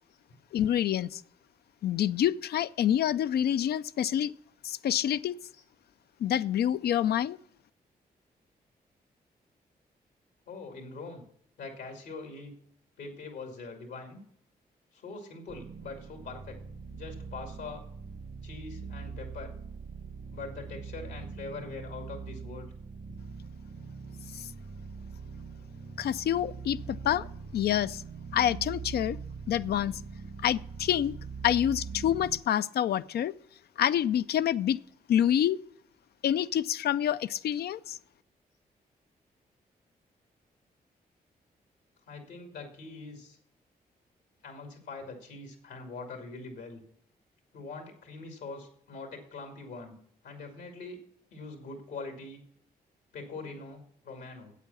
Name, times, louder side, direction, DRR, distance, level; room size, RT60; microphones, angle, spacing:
voice 1, 0.5-1.2 1.8-4.3 4.6-5.4 6.2-7.4 24.3-24.5 26.0-27.3 27.5-28.0 28.3-29.2 29.5-30.0 30.4-31.2 31.4-33.3 33.8-34.8 35.1-35.6 36.2-38.0, left 10 dB, 70° left, 0.4 m, -27 dB
voice 2, 10.5-11.3 11.6-12.6 13.0-14.2 14.9-16.6 16.9-17.8 18.4-19.5 20.3-22.7 23.1-23.2 42.1-43.4 44.4-46.8 47.5-50.0 50.2-51.0 51.3-52.4 53.1-54.5, left 3 dB, 90° left, 2.3 m, -43 dB
sound 1, 15.5-32.4, right 5 dB, 65° right, 1.3 m, -42 dB
8.2 x 8.2 x 7.0 m
supercardioid pair, 55°, 17 cm